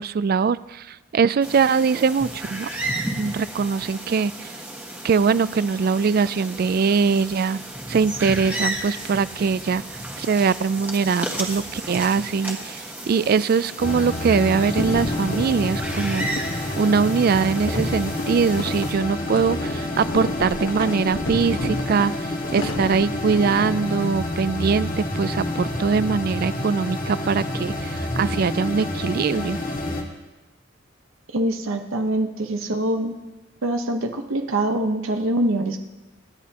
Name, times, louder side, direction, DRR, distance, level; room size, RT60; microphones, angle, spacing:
voice 1, 0.0-2.7 3.2-4.5 5.0-7.6 7.9-9.8 10.2-16.3 16.8-22.1 22.5-29.6, right 5 dB, 45° right, 17 dB, 0.3 m, -22 dB
sound 1, 1.4-18.9, right 1 dB, 10° right, 1.4 m, -33 dB
sound 2, 13.8-30.0, left 1 dB, 45° left, 1.7 m, -28 dB
sound 3, 14.7-23.7, left 1 dB, 80° left, 1.2 m, -33 dB
voice 2, 31.3-33.2 33.6-35.8, right 1 dB, 80° right, 5 dB, 1.0 m, -24 dB
26.0 x 10.5 x 2.9 m, 1.1 s
head